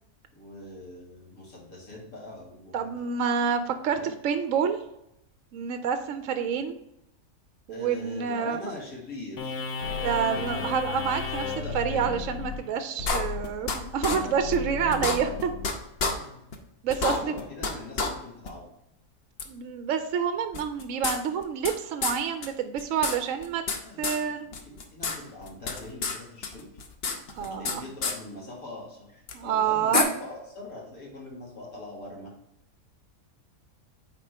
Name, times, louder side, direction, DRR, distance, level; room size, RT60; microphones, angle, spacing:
voice 1, 0.3-3.0 4.0-4.1 7.7-10.8 11.4-12.2 16.0-16.4 16.8-18.7 23.8-26.7 27.4-32.3, left 2 dB, 70° left, -3 dB, 2.5 m, -42 dB
voice 2, 2.7-4.8 5.5-6.8 7.7-8.7 10.0-11.4 11.7-15.5 16.8-17.4 19.5-23.6 24.0-24.5 27.3-27.8 29.3-30.1, right 7 dB, 70° right, 8 dB, 0.9 m, -28 dB
sound 1, 9.4-16.1, left 5 dB, 90° left, 1.5 m, -34 dB
sound 2, 13.1-13.8 14.0-14.2 14.5-14.6 14.9-15.7 16.0-16.1 16.5-16.6 16.9-17.7 18.0-18.1 18.4-18.5 19.4-19.5 20.5-21.7 22.0-22.2 22.4-22.5 22.8-23.8 24.0-24.2 24.5-25.2 25.4-26.2 26.4-27.7 28.0-28.1 29.3-29.4 29.9-30.0, left 4 dB, 50° left, 0.9 m, -28 dB
9.1 x 4.3 x 3.4 m, 0.82 s
omnidirectional pair, 1.6 m